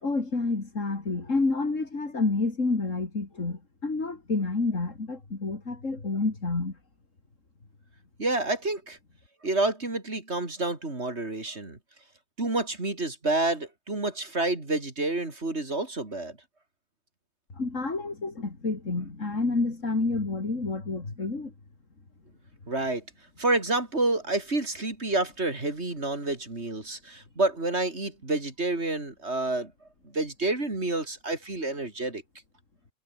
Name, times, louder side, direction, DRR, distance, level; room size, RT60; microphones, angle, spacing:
voice 1, 0.0-6.8 17.5-21.5, left 3 dB, 80° left, 3.8 m, -29 dB
voice 2, 8.2-9.0 9.4-11.8 12.4-16.4 22.7-23.0 23.4-29.7 30.0-32.2, right 2 dB, 60° right, 4.2 m, -29 dB
omnidirectional pair, 1.3 m